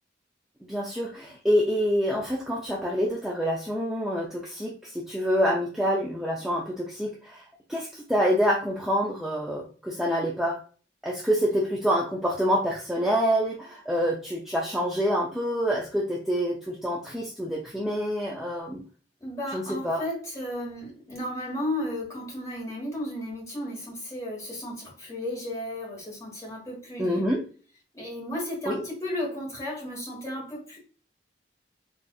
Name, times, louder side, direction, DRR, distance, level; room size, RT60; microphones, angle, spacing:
voice 1, 0.7-7.4 7.7-10.6 11.0-18.8 19.5-20.0 27.0-27.4 28.7-28.8, equal, ahead, 0.4 m, -27 dB
voice 2, 19.2-27.3 27.9-30.8, left 1 dB, 15° left, 1.3 m, -34 dB
4.2 x 2.4 x 2.3 m
head